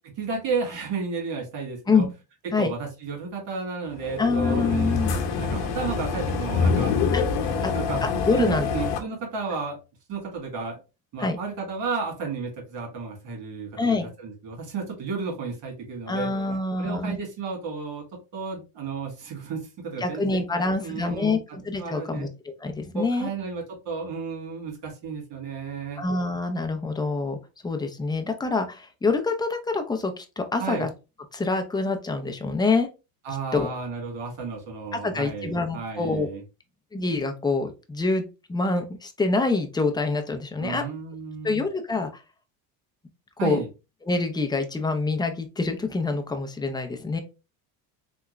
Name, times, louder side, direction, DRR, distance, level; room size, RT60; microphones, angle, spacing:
voice 1, 0.2-2.1 2.6-6.9 7.5-9.8 10.1-10.8 11.1-16.3 16.8-18.0 18.3-21.4 21.8-22.3 22.9-26.1 30.6-30.9 33.2-36.4 40.6-41.7 43.4-43.7, right 5 dB, 60° right, 1 dB, 1.9 m, -33 dB
sound 1, 4.0-9.0, left 5 dB, 75° left, 1.0 m, -25 dB
voice 2, 4.2-5.1 7.1-7.2 7.6-7.7 8.3-8.7 11.2-11.4 13.8-14.1 16.1-17.2 20.0-22.3 22.6-23.3 26.0-27.4 27.6-30.9 31.3-32.9 33.5-33.7 34.9-36.3 36.9-40.8 41.4-42.2 43.4-43.6 44.0-47.2, left 3 dB, 10° left, 5 dB, 0.5 m, -26 dB
3.5 x 2.3 x 3.0 m, 0.29 s
supercardioid pair, 90°, 49 cm